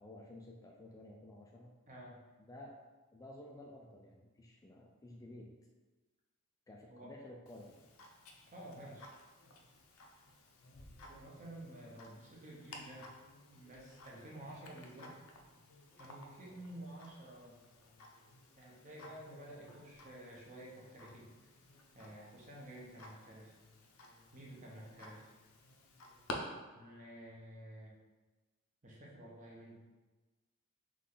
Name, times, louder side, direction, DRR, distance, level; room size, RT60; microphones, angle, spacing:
voice 1, 0.0-1.8 2.4-2.8 3.1-5.6 6.7-7.8, left 1 dB, 15° left, -1 dB, 0.3 m, -53 dB
voice 2, 1.9-2.2 6.9-7.1 8.5-9.1 11.1-13.1 13.5-15.1 16.0-17.6 18.6-21.5 21.9-23.6 24.3-25.3 26.7-27.9 28.8-29.8, right 1 dB, 35° right, -3 dB, 1.0 m, -51 dB
Tick-tock, 7.5-26.3, left 2 dB, 85° left, 0.6 m, -54 dB
3.7 x 3.2 x 3.9 m, 1.2 s
head